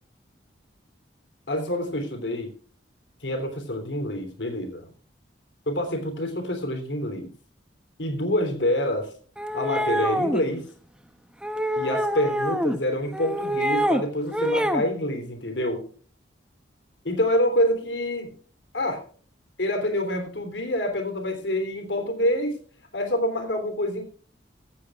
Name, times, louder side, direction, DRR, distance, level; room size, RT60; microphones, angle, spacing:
voice 1, 1.5-2.5 3.2-4.8 5.7-7.3 8.0-9.1 9.5-10.7 11.8-15.9 17.0-18.4 18.7-19.0 19.6-22.6 22.9-24.0, left 1 dB, 70° left, 6 dB, 3.2 m, -26 dB
sound 1, 9.4-10.4 11.4-12.8 13.1-14.0 14.3-14.9, equal, 5° right, 0.8 m, -25 dB
14.5 x 14.5 x 2.4 m, 0.44 s
head